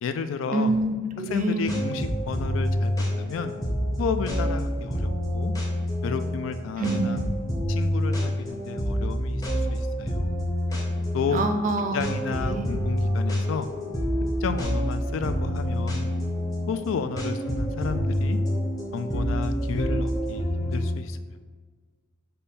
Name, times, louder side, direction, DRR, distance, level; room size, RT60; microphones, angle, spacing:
voice 1, 0.0-0.7 1.3-3.5 4.0-5.5 6.0-7.2 7.7-10.3 11.1-11.4 11.9-13.7 14.4-16.1 16.7-18.4 18.9-21.2, left 5 dB, 80° left, 10 dB, 0.3 m, -32 dB
voice 2, 0.5-1.8 6.8-7.2 11.3-12.0 12.3-12.7, right 2 dB, 40° right, 6 dB, 0.4 m, -26 dB
sound 1, 1.3-20.9, equal, 20° left, 0.7 m, -28 dB
5.3 x 2.2 x 4.1 m, 1.5 s
head